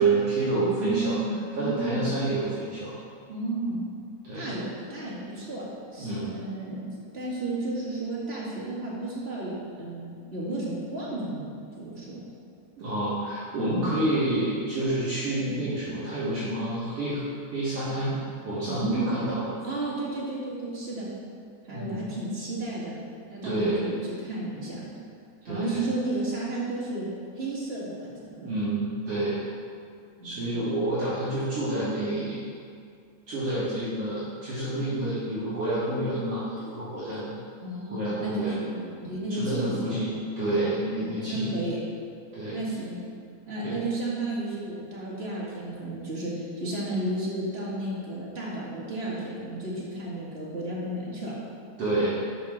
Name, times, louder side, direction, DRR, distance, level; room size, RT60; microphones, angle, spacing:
voice 1, 0.0-1.2 1.5-2.9 4.2-4.5 6.0-6.4 12.8-17.2 17.5-18.2 18.4-19.5 21.7-22.1 23.4-23.9 25.5-25.8 28.4-29.4 30.2-32.5 33.3-37.3 37.9-38.6 39.3-41.7 42.3-42.6 43.6-43.8 51.8-52.2, right 2 dB, 60° right, -10 dB, 2.3 m, -28 dB
voice 2, 0.5-2.1 3.3-3.8 4.3-6.8 7.1-12.2 13.7-14.0 18.7-19.2 19.6-21.1 21.6-23.0 23.3-24.9 25.5-27.1 27.3-28.5 30.2-30.6 37.6-40.0 40.6-41.8 42.5-43.0 43.5-51.3, right 2 dB, 30° right, -7 dB, 1.4 m, -33 dB
7.4 x 5.1 x 6.0 m, 2.2 s
omnidirectional pair, 3.4 m